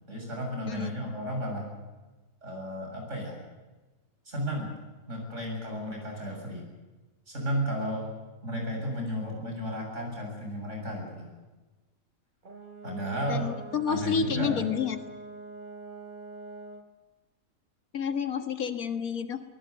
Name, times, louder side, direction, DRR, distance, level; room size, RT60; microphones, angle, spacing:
voice 1, 0.1-1.7 2.4-3.4 4.2-4.7 5.1-6.7 7.3-8.1 8.4-11.3 12.8-13.5 13.9-14.7, equal, 55° right, 1 dB, 7.8 m, -33 dB
Brass instrument, 12.4-16.9, right 3 dB, 35° right, 1.4 m, -44 dB
voice 2, 13.3-15.0 17.9-19.4, left 6 dB, 85° left, 9 dB, 2.0 m, -29 dB
22.5 x 20.0 x 8.2 m, 1.2 s
omnidirectional pair, 1.5 m